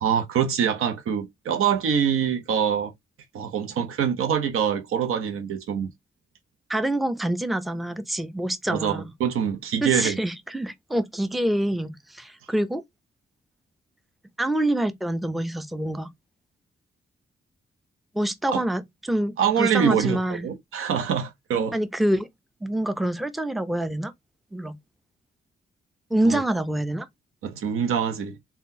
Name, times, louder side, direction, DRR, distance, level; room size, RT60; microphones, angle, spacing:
voice 1, 0.0-2.9 3.3-5.9 8.7-10.2 18.5-18.6 19.4-21.7 26.2-26.4 27.4-28.4, right 8 dB, 85° right, 0.6 m, -24 dB
voice 2, 6.7-9.1 9.8-12.8 14.4-16.1 18.1-20.5 21.7-22.3 22.6-24.1 24.5-24.8 26.1-27.1, right 1 dB, ahead, 0.4 m, -26 dB
3.6 x 2.2 x 2.6 m
cardioid pair, 75°, 21 cm